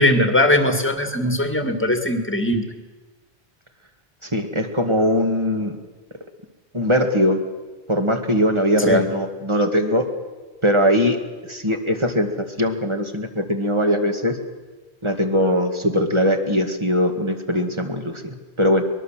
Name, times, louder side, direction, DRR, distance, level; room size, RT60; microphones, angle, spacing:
voice 1, 0.0-2.6 8.9-9.1, left 1 dB, 10° left, 6 dB, 2.1 m, -20 dB
voice 2, 4.2-5.7 6.7-7.4 7.9-10.1 10.6-11.2 11.4-14.4 15.0-18.8, equal, 25° right, 4 dB, 2.1 m, -20 dB
23.0 x 21.0 x 7.5 m, 1.3 s
omnidirectional pair, 1.1 m